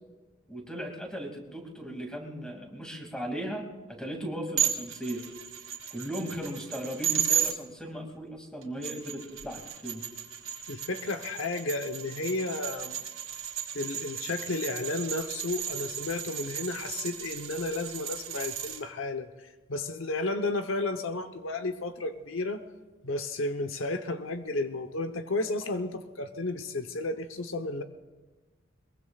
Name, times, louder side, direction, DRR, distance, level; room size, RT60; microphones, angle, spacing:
voice 1, 0.5-5.2 5.9-10.0, equal, 5° left, 1 dB, 2.4 m, -37 dB
sound 1, 4.6-7.5 8.6-18.8, right 10 dB, 75° right, 2.1 m, -34 dB
voice 2, 10.7-13.0 13.7-19.3 19.7-22.6 23.0-27.8, left 2 dB, 75° left, 8 dB, 0.9 m, -32 dB
22.5 x 22.0 x 2.4 m, 1.3 s
head